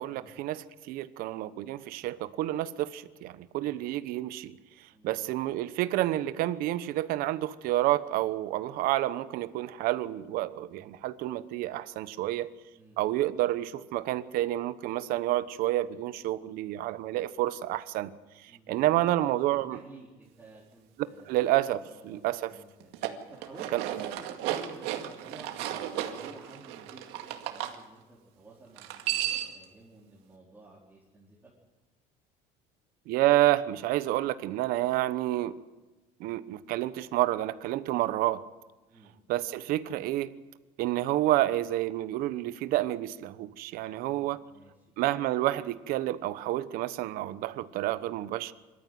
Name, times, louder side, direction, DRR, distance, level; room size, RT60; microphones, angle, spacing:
voice 1, 0.0-4.6 5.0-12.5 13.0-18.1 18.7-19.8 21.3-22.5 23.7-23.8 33.1-35.5 36.2-38.4 39.3-40.3 40.8-44.4 45.0-48.5, right 15 dB, 60° right, 14 dB, 1.0 m, -29 dB
voice 2, 12.7-13.2 18.5-21.5 21.8-22.9 23.3-31.5 38.9-39.1 43.9-44.8, right 2 dB, 10° right, -6 dB, 4.2 m, -52 dB
sound 1, 22.8-27.8 28.8-29.6, right 12 dB, 75° right, 2.2 m, -34 dB
25.5 x 14.0 x 9.4 m, 1.2 s
cardioid pair, 160°, 17 cm